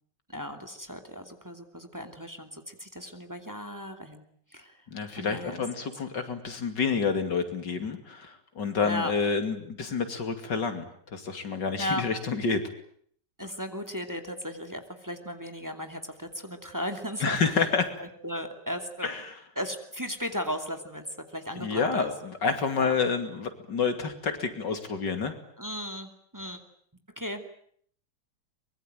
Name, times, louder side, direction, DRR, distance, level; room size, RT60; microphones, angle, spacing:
voice 1, 0.3-4.2 4.5-4.8 5.2-5.6 8.8-9.1 11.8-12.0 13.4-17.4 18.0-19.2 19.6-22.1 22.8-23.0 25.6-26.6 27.2-27.5, equal, 10° right, 6 dB, 2.6 m, -36 dB
voice 2, 4.9-12.6 17.2-17.9 19.0-19.3 21.6-25.3, left 5 dB, 85° left, 8 dB, 3.3 m, -29 dB
24.0 x 22.0 x 9.2 m, 0.63 s
omnidirectional pair, 1.9 m